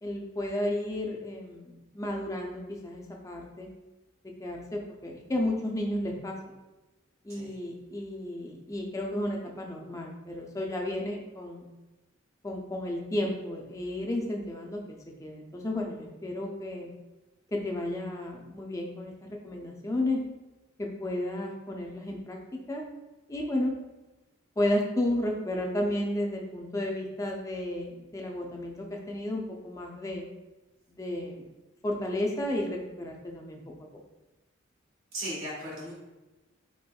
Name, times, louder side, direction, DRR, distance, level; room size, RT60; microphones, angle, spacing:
voice 1, 0.0-3.7 4.2-6.4 7.2-11.7 12.4-16.9 17.5-20.2 20.8-22.8 23.3-23.7 24.6-30.2 30.9-31.4 31.8-33.6, left 1 dB, 15° left, 0 dB, 0.4 m, -33 dB
voice 2, 35.1-35.9, right 1 dB, 80° right, -6 dB, 1.3 m, -37 dB
4.2 x 3.1 x 2.2 m, 1.1 s
head